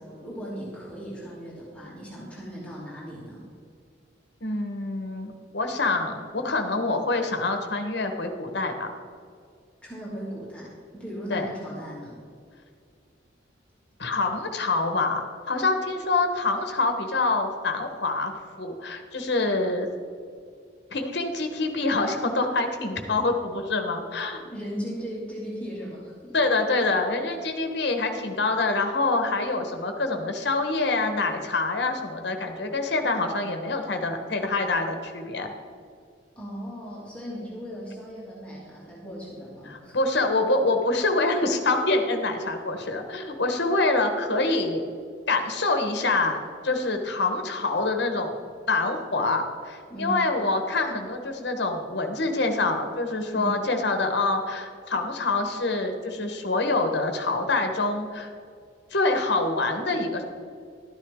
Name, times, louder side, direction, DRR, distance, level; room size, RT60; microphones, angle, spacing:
voice 1, 0.0-3.4 9.8-12.1 24.4-26.4 36.4-39.9 49.9-50.2 53.3-53.6, equal, 5° left, -7 dB, 2.7 m, -37 dB
voice 2, 4.4-8.9 11.3-11.5 14.0-19.9 20.9-24.4 26.3-35.5 39.9-44.8 45.3-46.4 46.6-48.4 48.7-58.3 58.9-60.2, left 3 dB, 65° left, 5 dB, 1.2 m, -26 dB
12.5 x 10.0 x 3.7 m, 2.2 s
head